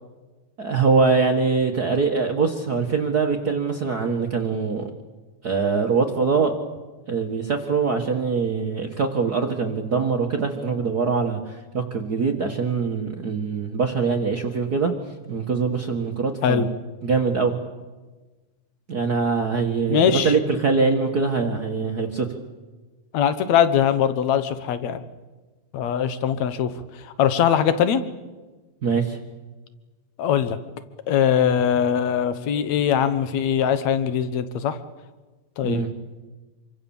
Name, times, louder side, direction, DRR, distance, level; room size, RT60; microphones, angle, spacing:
voice 1, 0.6-4.9 5.4-6.5 7.1-14.9 15.3-16.7 17.0-17.6 18.9-22.3 28.8-29.2 35.6-35.9, right 4 dB, 80° right, 2 dB, 0.8 m, -23 dB
voice 2, 19.9-20.3 23.1-25.0 25.7-26.7 27.2-28.0 30.2-30.6 31.1-34.8 35.6-35.9, left 8 dB, 60° left, 12 dB, 2.0 m, -21 dB
27.0 x 24.5 x 7.2 m, 1.3 s
omnidirectional pair, 4.4 m